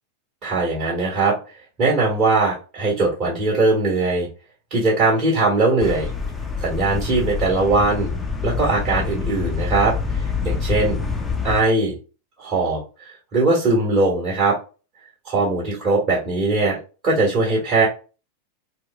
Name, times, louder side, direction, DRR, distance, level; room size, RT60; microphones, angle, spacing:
voice 1, 0.4-1.4 1.8-4.3 4.7-6.1 6.6-8.1 8.4-11.0 11.4-11.9 12.4-14.6 15.2-16.8 17.0-17.9, right 3 dB, 35° right, -3 dB, 1.8 m, -20 dB
sound 1, 5.8-11.6, left 5 dB, 15° left, 0.7 m, -26 dB
4.2 x 2.2 x 3.4 m, 0.33 s
figure-of-eight pair, 90°, 0 cm